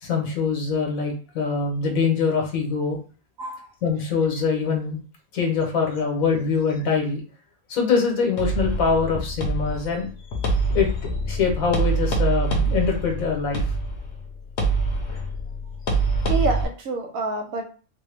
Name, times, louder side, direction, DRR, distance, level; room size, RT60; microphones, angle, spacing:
voice 1, 0.0-3.0 3.8-5.0 5.3-7.2 7.7-10.1 10.4-13.6, left 5 dB, 75° left, 1 dB, 1.4 m, -24 dB
sound 1, 8.4-16.6, right 3 dB, 55° left, 1.0 m, -25 dB
voice 2, 16.3-17.7, right 1 dB, 75° right, 3 dB, 1.1 m, -27 dB
3.7 x 2.2 x 3.4 m, 0.37 s
omnidirectional pair, 1.5 m